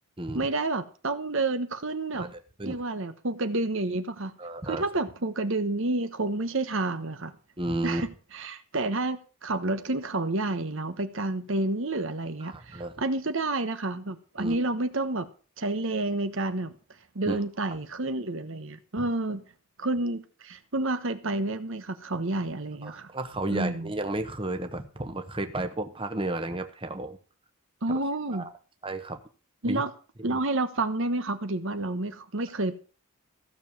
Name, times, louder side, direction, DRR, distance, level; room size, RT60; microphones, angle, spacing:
voice 1, 0.3-2.3 2.6-4.3 4.6-7.3 7.8-15.3 15.6-16.7 17.1-19.4 19.8-23.1 23.5-23.9 27.8-28.5 29.6-29.9 30.2-32.7, right 2 dB, 60° right, 1.1 m, -29 dB
voice 2, 2.1-2.8 4.4-4.8 7.6-8.0 12.4-12.9 14.4-14.6 17.3-17.4 22.8-27.2 27.9-28.0 28.3-28.5 28.8-29.2 29.6-29.8 30.2-30.4, right 1 dB, 25° right, 1.2 m, -32 dB
15.5 x 7.0 x 7.2 m
head